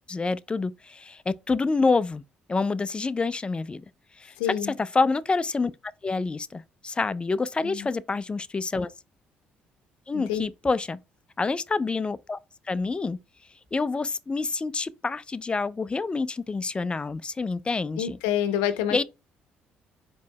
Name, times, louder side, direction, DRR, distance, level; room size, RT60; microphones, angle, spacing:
voice 1, 0.1-2.2 2.5-3.8 4.2-4.3 4.8-5.7 6.0-8.9 10.1-11.0 11.4-12.4 12.7-13.2 13.7-18.2 18.9-19.0, left 3 dB, 25° left, 0.4 m, -27 dB
voice 2, 4.4-4.7 7.6-7.9 10.1-10.5 18.0-19.0, left 10 dB, 85° left, 0.6 m, -27 dB
4.4 x 3.1 x 3.3 m
supercardioid pair, 60°, 4 cm